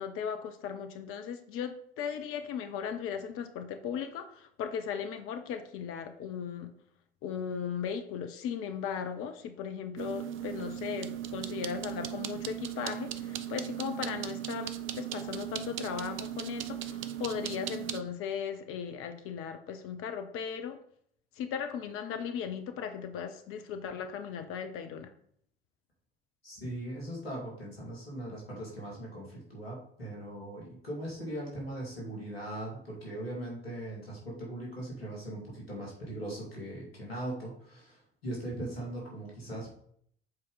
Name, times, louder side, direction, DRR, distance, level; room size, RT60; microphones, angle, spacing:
voice 1, 0.0-6.7 7.2-20.8 21.4-25.1, left 7 dB, 45° left, 7 dB, 0.9 m, -37 dB
sound 1, 10.0-18.0, right 11 dB, 45° right, 0.7 m, -38 dB
voice 2, 26.4-39.8, right 1 dB, 80° left, -3 dB, 2.5 m, -40 dB
7.6 x 4.5 x 4.0 m, 0.65 s
figure-of-eight pair, 60°, 30 cm